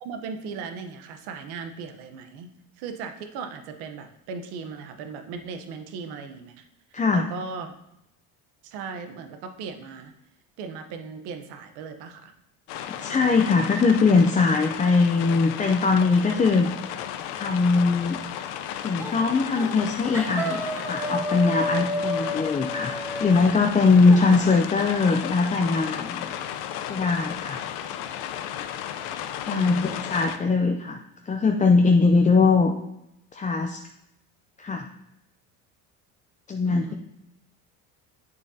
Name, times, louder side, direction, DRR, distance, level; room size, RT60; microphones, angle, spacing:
voice 1, 0.0-6.7 7.1-7.8 8.6-10.1 10.6-12.3 29.5-30.1 36.7-36.9, right 5 dB, 80° right, 7 dB, 1.0 m, -37 dB
voice 2, 6.9-7.3 13.0-16.7 17.3-18.2 18.8-22.9 23.2-26.3 26.9-27.6 29.4-31.0 31.3-32.7 33.3-33.8 34.6-34.9 36.5-36.9, left 4 dB, 20° left, 3 dB, 0.5 m, -21 dB
sound 1, 12.7-30.4, left 10 dB, 80° left, 0.7 m, -34 dB
sound 2, 19.0-19.2 19.5-19.9 20.1-24.2, equal, 5° right, 1.4 m, -31 dB
8.5 x 6.7 x 2.8 m, 0.82 s
cardioid pair, 105°, 39 cm